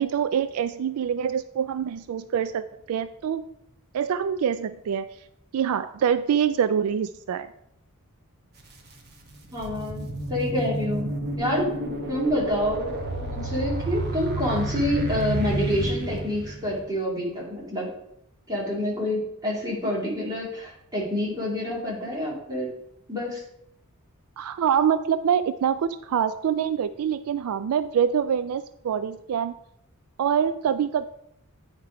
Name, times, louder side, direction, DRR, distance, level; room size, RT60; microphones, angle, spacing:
voice 1, 0.0-3.5 3.9-5.1 5.5-7.5 24.4-29.6 30.2-31.1, right 8 dB, 70° right, 12 dB, 0.3 m, -25 dB
sound 1, 8.6-8.7 9.2-16.9, right 1 dB, 45° right, 1.2 m, -30 dB
voice 2, 9.5-11.7 12.1-17.9 18.5-22.7 23.1-23.4, left 1 dB, 20° right, -4 dB, 2.5 m, -28 dB
9.4 x 4.5 x 4.7 m, 0.78 s
head